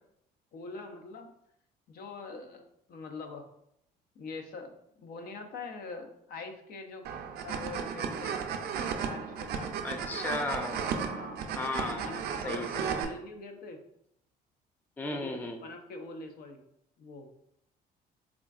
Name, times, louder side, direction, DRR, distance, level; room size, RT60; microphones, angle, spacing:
voice 1, 0.5-1.3 1.9-2.6 2.9-3.5 4.2-7.1 7.4-8.4 9.1-9.7 11.1-11.5 11.8-13.8 15.1-16.6 17.0-17.3, left 3 dB, 65° left, 5 dB, 0.6 m, -43 dB
sound 1, 7.0-13.0, right 7 dB, 70° right, 0.5 m, -34 dB
voice 2, 9.8-10.8 11.6-13.0 15.0-15.6, left 2 dB, 10° left, 4 dB, 0.3 m, -35 dB
3.6 x 3.4 x 2.4 m, 0.75 s
cardioid pair, 110°, 17 cm